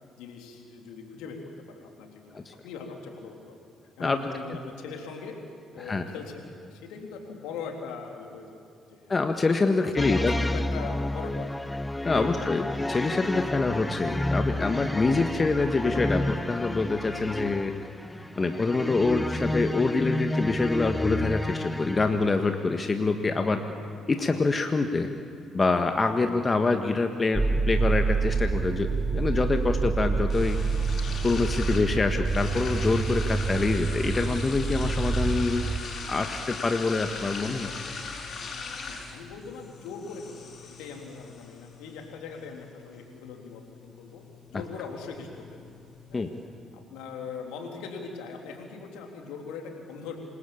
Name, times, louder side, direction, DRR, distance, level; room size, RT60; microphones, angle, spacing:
voice 1, 0.2-3.6 4.0-5.4 5.7-8.6 8.9-9.2 10.0-11.5 12.2-12.4 14.8-14.9 23.5-23.8 38.8-44.2 44.5-45.7 46.1-46.3 46.7-50.2, left 5 dB, 70° left, 2 dB, 3.6 m, -41 dB
voice 2, 9.1-10.3 12.0-17.7 18.4-23.6 24.1-25.1 25.5-30.6 31.2-35.7 36.1-37.7 46.1-46.3, left 3 dB, 30° left, 5 dB, 1.7 m, -26 dB
sound 1, 10.0-22.5, left 1 dB, 15° left, 0.8 m, -30 dB
sound 2, 27.3-35.8, right 4 dB, 20° right, 1.2 m, -27 dB
sound 3, 28.5-46.5, left 4 dB, 50° left, 6.5 m, -41 dB
27.5 x 20.5 x 8.6 m, 2.6 s
hypercardioid pair, 45°, 0 cm